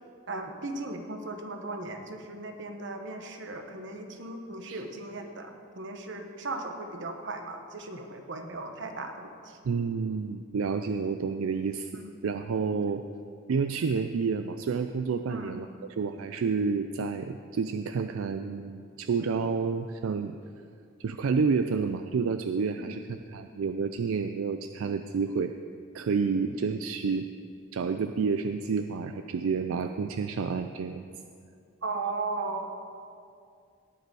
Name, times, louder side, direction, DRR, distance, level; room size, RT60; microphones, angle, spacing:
voice 1, 0.3-9.6 11.9-12.1 15.3-15.5 22.8-23.0 26.3-26.4 31.8-32.7, right 3 dB, 60° right, 5 dB, 1.1 m, -37 dB
voice 2, 9.6-11.9 12.2-13.0 13.5-20.4 21.0-25.5 25.9-27.2 27.7-31.1, right 5 dB, 80° right, 8 dB, 0.4 m, -29 dB
18.0 x 6.7 x 4.8 m, 2.4 s
head